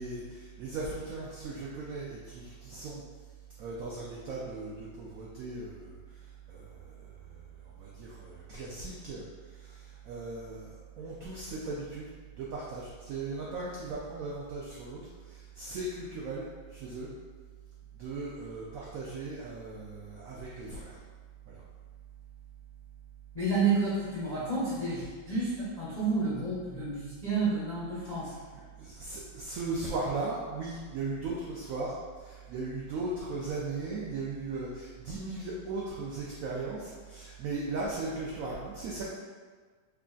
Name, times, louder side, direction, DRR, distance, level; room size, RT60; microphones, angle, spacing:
voice 1, 0.0-3.0 3.6-17.1 18.0-21.0 21.5-21.6 28.1-39.0, right 3 dB, 90° right, -5 dB, 0.7 m, -38 dB
voice 2, 23.3-28.3, right 3 dB, 55° left, -11 dB, 0.4 m, -30 dB
3.2 x 2.4 x 3.7 m, 1.5 s
omnidirectional pair, 2.1 m